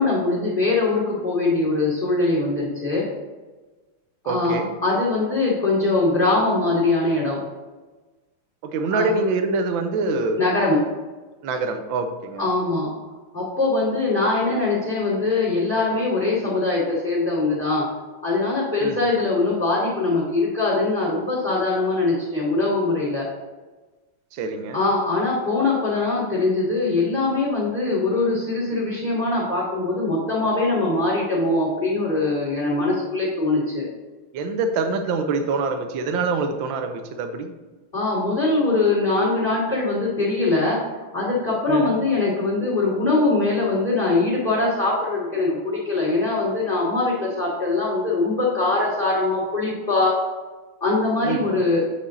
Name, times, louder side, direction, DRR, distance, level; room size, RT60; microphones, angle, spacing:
voice 1, 0.0-3.0 4.2-7.4 8.9-9.1 10.4-10.8 12.4-12.9 13.3-17.8 18.2-23.3 24.7-33.9 37.9-40.8 41.1-50.1 50.8-51.8, left 3 dB, 25° left, -8 dB, 3.0 m, -22 dB
voice 2, 4.3-4.7 8.6-10.4 11.4-12.5 18.8-19.1 24.3-24.8 34.3-37.5 41.7-41.9 51.2-51.5, right 3 dB, 70° right, 6 dB, 1.5 m, -25 dB
8.6 x 5.2 x 4.1 m, 1.2 s
omnidirectional pair, 2.4 m